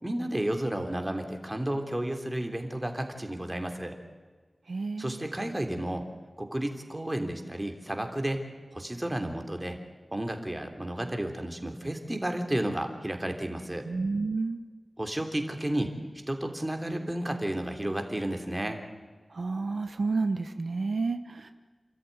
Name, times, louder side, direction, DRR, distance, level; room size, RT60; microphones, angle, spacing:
voice 1, 0.0-4.0 5.0-6.1 6.4-8.4 8.7-9.8 10.1-13.8 15.0-15.9 16.3-18.8, right 1 dB, 20° right, 4 dB, 3.3 m, -32 dB
voice 2, 4.7-5.2 13.9-14.6 19.3-21.5, right 3 dB, 80° right, 8 dB, 1.0 m, -30 dB
29.0 x 14.0 x 9.5 m, 1.4 s
wide cardioid pair, 75°, 0 cm